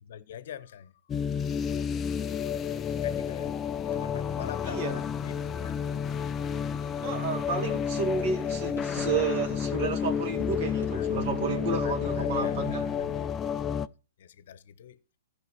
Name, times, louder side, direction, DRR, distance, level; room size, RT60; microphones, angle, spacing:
voice 1, 0.0-0.9 3.0-5.8 7.6-7.7 10.6-11.4 11.7-13.7 14.2-15.0, left 9 dB, 60° left, 0.9 m, -44 dB
sound 1, 1.1-13.9, left 7 dB, 20° left, 0.4 m, -30 dB
sound 2, 1.3-13.3, right 3 dB, 65° right, 2.9 m, -50 dB
voice 2, 4.6-5.0 7.0-12.9, right 5 dB, 45° right, 1.8 m, -31 dB
15.0 x 5.1 x 4.6 m
hypercardioid pair, 130°, 0 cm